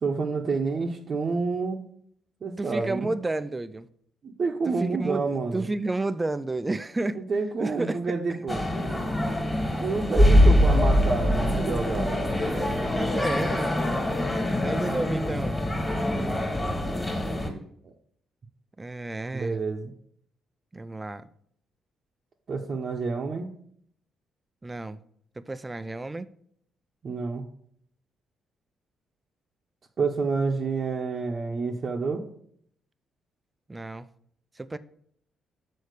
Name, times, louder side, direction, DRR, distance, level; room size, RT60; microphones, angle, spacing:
voice 1, 0.0-1.8 2.4-3.1 4.2-5.7 7.1-8.6 9.8-12.3 17.8-17.9 19.3-19.9 22.5-23.5 27.0-27.4 30.0-32.2, right 4 dB, 45° right, 0.8 m, -28 dB
voice 2, 2.6-3.9 4.7-5.2 5.5-7.2 7.6-8.0 12.4-13.8 14.6-15.6 18.8-19.6 20.7-21.3 24.6-25.0 25.4-26.3 33.7-34.1 34.6-34.8, right 2 dB, 20° right, 0.4 m, -31 dB
sound 1, 8.5-17.5, left 1 dB, 15° left, 1.8 m, -23 dB
6.5 x 4.2 x 6.5 m
cardioid pair, 90°, 0 cm